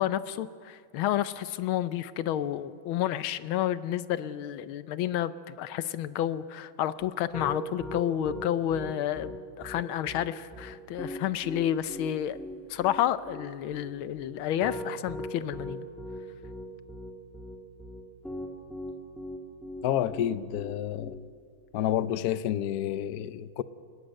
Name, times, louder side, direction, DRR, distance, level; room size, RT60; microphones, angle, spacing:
voice 1, 0.0-12.4 12.7-15.8, left 11 dB, 85° left, 14 dB, 1.6 m, -30 dB
Piano, 7.0-21.2, left 1 dB, ahead, 2.2 m, -39 dB
voice 2, 19.8-21.2 21.7-23.6, left 11 dB, 65° left, 14 dB, 1.0 m, -29 dB
30.0 x 18.0 x 6.5 m, 2.2 s
omnidirectional pair, 2.2 m